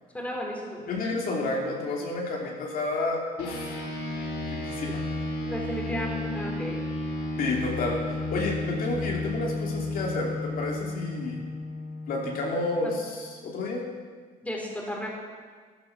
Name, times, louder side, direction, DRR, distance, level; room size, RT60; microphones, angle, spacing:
voice 1, 0.1-0.8 4.8-5.0 5.4-6.8 12.8-12.9 14.4-15.1, equal, 10° left, -1 dB, 3.5 m, -34 dB
voice 2, 0.9-3.8 4.5-5.0 7.4-11.4 12.1-13.8, left 2 dB, 60° left, -1 dB, 2.9 m, -30 dB
sound 1, 3.4-13.1, left 2 dB, 85° left, 4.0 m, -33 dB
14.5 x 11.0 x 5.9 m, 1.5 s
cardioid pair, 110°, 17 cm